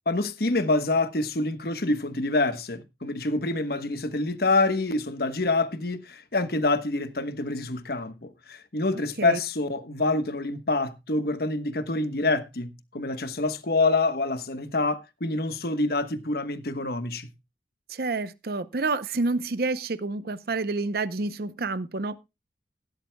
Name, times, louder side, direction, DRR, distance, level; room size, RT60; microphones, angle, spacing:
voice 1, 0.1-17.3, left 2 dB, 55° left, 1.2 m, -26 dB
voice 2, 17.9-22.2, right 3 dB, 55° right, 0.7 m, -28 dB
16.0 x 12.5 x 2.2 m
head